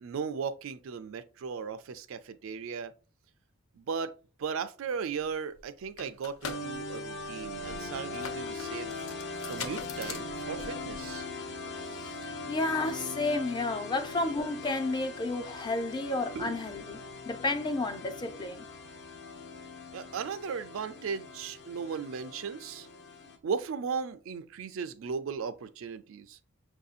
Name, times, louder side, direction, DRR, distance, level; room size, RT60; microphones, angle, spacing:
voice 1, 0.0-2.9 3.8-8.9 9.5-11.3 16.4-16.6 19.9-22.9 23.4-26.4, right 6 dB, 70° right, 0.4 m, -36 dB
sound 1, 5.2-5.3 5.5-11.2, left 5 dB, 85° left, 0.6 m, -43 dB
sound 2, 6.4-23.4, left 3 dB, 55° left, 0.8 m, -41 dB
voice 2, 11.9-17.0 17.3-18.6, left 2 dB, 20° left, 0.4 m, -32 dB
6.0 x 2.6 x 2.4 m
head